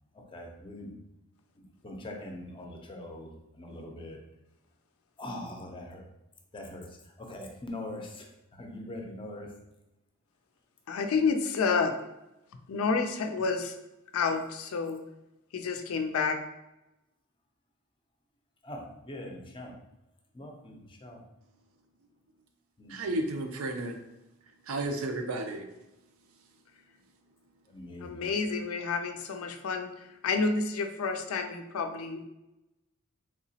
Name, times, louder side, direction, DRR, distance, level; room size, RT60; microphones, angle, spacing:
voice 1, 0.3-0.9 1.6-3.3 3.5-4.2 5.2-6.0 6.5-6.9 7.2-8.3 8.5-9.5 18.6-19.7 20.3-21.2 22.8-23.0 27.7-28.3, left 1 dB, 25° left, 1 dB, 0.5 m, -42 dB
voice 2, 10.9-11.9 12.7-13.7 14.1-15.0 15.5-16.4 28.0-29.9 30.2-32.3, left 4 dB, 75° left, 6 dB, 0.4 m, -29 dB
voice 3, 22.9-24.0 24.6-25.7, right 2 dB, 75° right, 5 dB, 0.5 m, -32 dB
3.5 x 2.9 x 2.7 m, 0.93 s
head